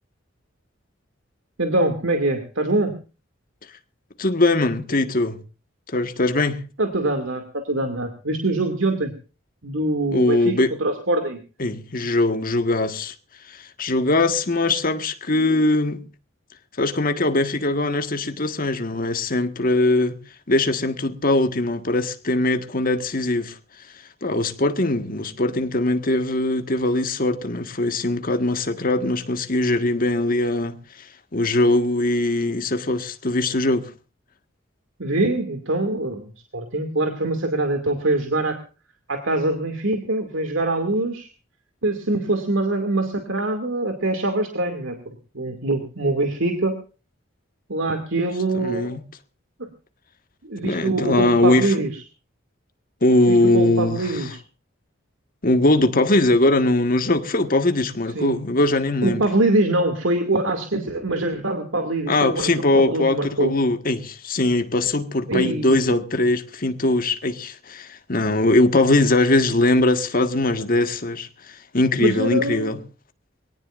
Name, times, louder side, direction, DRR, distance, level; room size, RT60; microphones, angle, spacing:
voice 1, 1.6-3.0 6.8-9.1 9.6-11.4 35.0-38.6 39.1-41.3 41.8-46.8 47.7-49.0 49.6-49.7 50.4-51.9 53.3-54.4 58.1-58.4 59.0-63.5 65.3-66.0 72.0-72.7, right 2 dB, 80° right, 2.5 m, -24 dB
voice 2, 4.2-5.4 5.9-6.6 10.1-10.7 11.6-13.1 13.4-16.0 16.8-20.2 20.5-23.6 23.9-33.9 48.5-49.0 50.6-51.7 53.0-54.4 55.4-59.2 62.1-72.8, left 2 dB, 45° left, 1.7 m, -21 dB
24.5 x 18.0 x 2.6 m
head